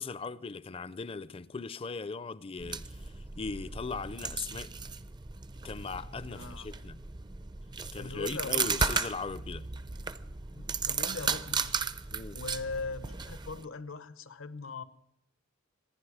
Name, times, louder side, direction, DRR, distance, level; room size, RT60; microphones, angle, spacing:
voice 1, 0.0-4.7 5.6-7.0 7.9-9.7 12.1-12.4, left 4 dB, 30° left, 0.5 m, -39 dB
sound 1, 2.6-13.7, right 5 dB, 20° right, 0.5 m, -35 dB
voice 2, 6.2-6.7 8.0-8.9 10.5-14.8, left 4 dB, 85° left, 0.9 m, -41 dB
26.0 x 10.0 x 4.9 m
head